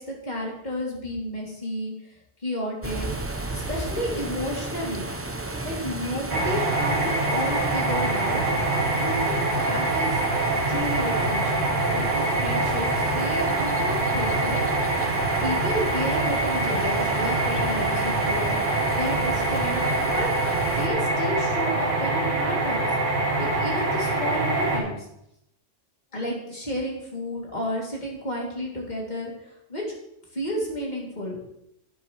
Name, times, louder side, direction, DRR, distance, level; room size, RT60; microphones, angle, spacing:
voice 1, 0.0-1.9 2.4-3.1 3.5-5.1 5.6-8.4 8.9-10.2 10.7-11.7 11.9-14.6 15.4-18.6 18.9-20.3 20.7-25.1 26.1-29.8 30.3-31.4, equal, 35° left, -3 dB, 2.7 m, -32 dB
sound 1, 2.8-20.9, right 2 dB, 15° right, 0.6 m, -33 dB
sound 2, 6.3-24.8, right 2 dB, 85° right, 2.1 m, -25 dB
11.5 x 8.9 x 3.1 m, 0.79 s
omnidirectional pair, 1.2 m